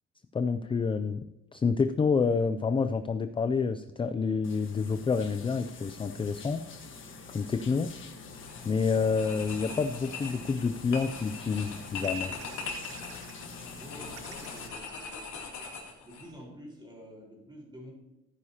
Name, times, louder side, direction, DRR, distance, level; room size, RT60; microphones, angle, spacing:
voice 1, 0.3-1.2 1.5-6.6 7.3-7.9 8.7-12.3, left 5 dB, 20° left, 11 dB, 0.3 m, -28 dB
sound 1, 4.4-14.7, left 4 dB, 45° left, 1.4 m, -45 dB
sound 2, 8.3-8.7 9.0-16.3, left 4 dB, 90° left, 2.8 m, -41 dB
sound 3, 12.0-13.4 13.8-13.9 14.1-15.2 15.8-15.9 16.2-16.4, right 7 dB, 55° right, 1.1 m, -52 dB
voice 2, 13.8-15.7 16.0-17.9, equal, 15° right, -2 dB, 4.4 m, -49 dB
14.0 x 9.8 x 2.9 m, 0.96 s
cardioid pair, 130°, 29 cm